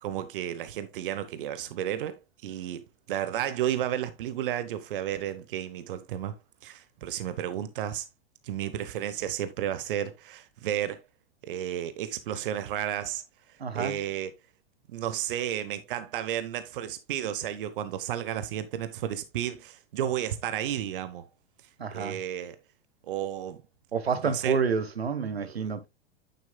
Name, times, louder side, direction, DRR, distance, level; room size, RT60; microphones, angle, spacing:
voice 1, 0.0-6.4 6.6-8.0 8.4-11.0 11.4-13.2 13.7-14.3 14.9-21.3 21.9-22.6 23.1-23.6 24.2-24.6 25.4-25.7, right 11 dB, 60° right, 1.0 m, -32 dB
voice 2, 13.6-13.9 21.8-22.2 23.9-25.9, right 5 dB, 80° right, 1.1 m, -29 dB
9.4 x 7.3 x 2.2 m
figure-of-eight pair, 100°, 31 cm